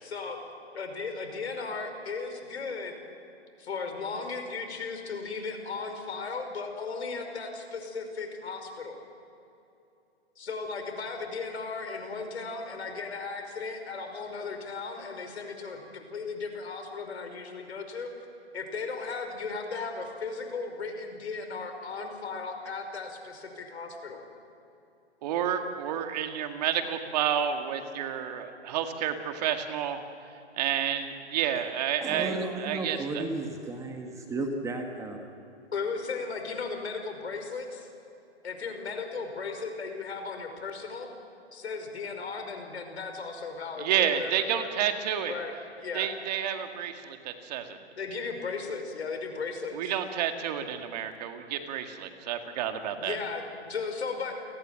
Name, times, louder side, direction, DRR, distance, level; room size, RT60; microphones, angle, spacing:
voice 1, 0.0-0.4 0.7-3.0 3.6-9.0 10.4-18.1 18.5-24.2 35.7-37.9 38.4-41.1 41.5-44.7 45.3-46.1 48.0-49.9 53.0-54.3, left 4 dB, 70° left, 5 dB, 5.3 m, -36 dB
voice 2, 25.2-30.0 30.6-33.2 43.8-45.3 45.9-47.8 49.7-53.2, right 9 dB, 35° right, 6 dB, 2.1 m, -30 dB
voice 3, 32.0-35.2, right 2 dB, 10° right, 4 dB, 1.5 m, -33 dB
29.5 x 19.0 x 7.7 m, 2.9 s
hypercardioid pair, 145°, 34 cm